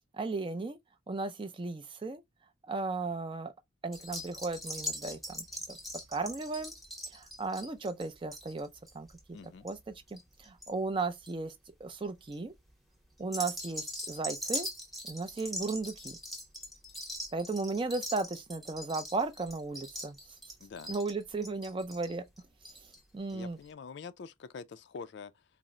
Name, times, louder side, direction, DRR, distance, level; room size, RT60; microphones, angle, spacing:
voice 1, 0.1-0.8 1.1-2.2 2.7-3.5 3.8-5.8 6.1-6.7 7.1-8.7 8.9-9.1 9.6-11.5 11.8-12.5 13.2-14.7 15.1-16.2 17.3-20.2 20.9-22.2 23.1-23.6, right 3 dB, 25° right, 0.4 m, -35 dB
sound 1, 3.9-10.7 11.0-11.5 12.0-12.4 13.2-23.0 23.3-23.4 23.6-23.7, left 1 dB, ahead, 0.8 m, -41 dB
voice 2, 9.3-9.7 20.6-20.9 23.3-25.4, left 5 dB, 55° left, 0.3 m, -45 dB
4.2 x 2.0 x 3.5 m
head